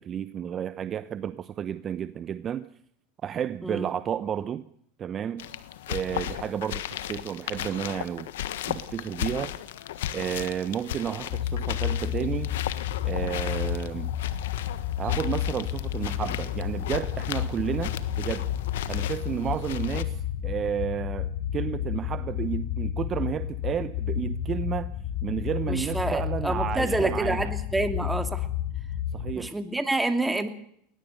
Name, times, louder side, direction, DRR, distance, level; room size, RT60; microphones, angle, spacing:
voice 1, 0.0-2.7 3.2-4.6 5.0-5.5 5.9-8.3 8.7-9.5 10.1-12.5 13.0-14.1 15.0-18.5 18.9-24.9 25.2-27.5 29.1-29.6, right 9 dB, 35° right, 14 dB, 0.9 m, -32 dB
sound 1, 5.4-20.0, left 12 dB, 75° left, 1.4 m, -36 dB
sound 2, 11.3-29.3, left 10 dB, 60° left, 2.4 m, -31 dB
voice 2, 25.7-28.5 29.4-30.5, right 2 dB, 10° right, 8 dB, 2.7 m, -28 dB
21.0 x 19.5 x 6.7 m, 0.69 s
hypercardioid pair, 95°, 0 cm